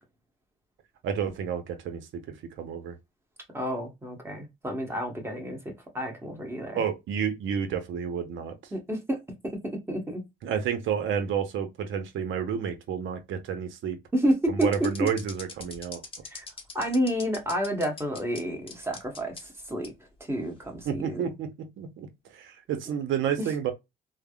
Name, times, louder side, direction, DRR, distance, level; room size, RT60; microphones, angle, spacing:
voice 1, 1.0-2.0 2.3-2.9 6.7-8.5 10.4-14.0 14.5-16.0 20.8-22.1 22.3-23.7, right 7 dB, 75° right, 0.7 m, -30 dB
voice 2, 3.5-6.8 8.7-9.2 9.6-10.2 14.1-15.1 16.2-16.5 16.7-19.9 20.2-21.3 23.4-23.5, equal, 10° right, 1.0 m, -30 dB
sound 1, 14.6-18.4 18.7-19.4 19.8-19.9 20.6-20.8, left 4 dB, 25° left, 0.8 m, -41 dB
3.3 x 2.0 x 2.2 m
cardioid pair, 90°, 20 cm